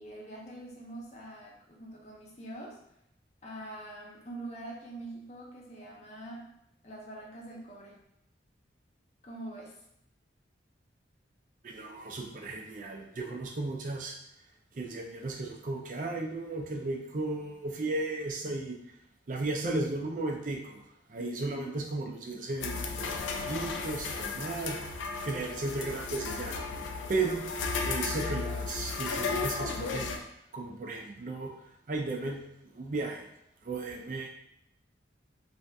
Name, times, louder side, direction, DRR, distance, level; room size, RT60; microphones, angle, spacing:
voice 1, 0.0-2.8 3.4-6.5 6.8-8.0 9.2-9.8 21.2-21.7, right 1 dB, 35° left, -2 dB, 0.6 m, -44 dB
voice 2, 11.6-14.2 14.7-18.8 19.3-20.8 21.1-24.8 25.2-26.6 27.1-27.5 27.8-30.3 30.5-31.5 31.9-33.3 33.6-34.3, right 2 dB, 45° right, 2 dB, 0.5 m, -35 dB
sound 1, 22.6-30.2, left 4 dB, 85° left, 0.4 m, -34 dB
2.7 x 2.5 x 3.3 m, 0.80 s
head